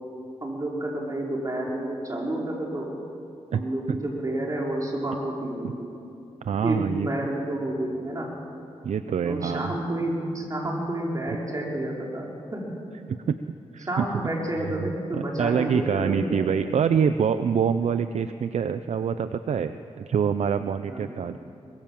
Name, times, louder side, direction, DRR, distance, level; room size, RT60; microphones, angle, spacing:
voice 1, 0.4-2.9 3.5-5.9 6.6-8.3 9.2-12.6 13.9-16.6 20.9-21.2, right 1 dB, 30° right, -2 dB, 5.1 m, -30 dB
voice 2, 6.4-7.3 8.8-9.7 13.3-13.4 13.7-14.2 14.7-14.8 15.1-21.4, right 7 dB, 75° right, 11 dB, 0.7 m, -25 dB
24.0 x 21.5 x 7.6 m, 2.6 s
wide cardioid pair, 95°, 12 cm